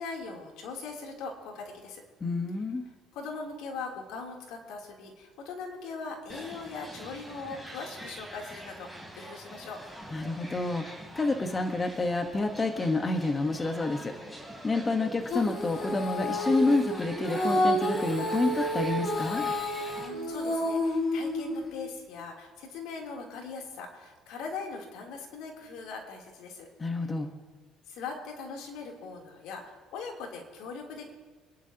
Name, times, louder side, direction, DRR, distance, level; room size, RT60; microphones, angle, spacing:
voice 1, 0.0-2.0 3.1-9.8 20.0-26.7 27.9-31.1, left 4 dB, 75° left, 0 dB, 3.3 m, -40 dB
voice 2, 2.2-2.9 10.1-14.2 14.6-19.4 26.8-27.3, left 2 dB, 25° left, 5 dB, 1.2 m, -29 dB
sound 1, 6.3-20.1, equal, 10° left, 3.4 m, -44 dB
Female singing, 15.3-21.8, left 1 dB, 40° left, 3.1 m, -30 dB
26.5 x 11.0 x 2.9 m, 1.4 s
cardioid pair, 110°, 0 cm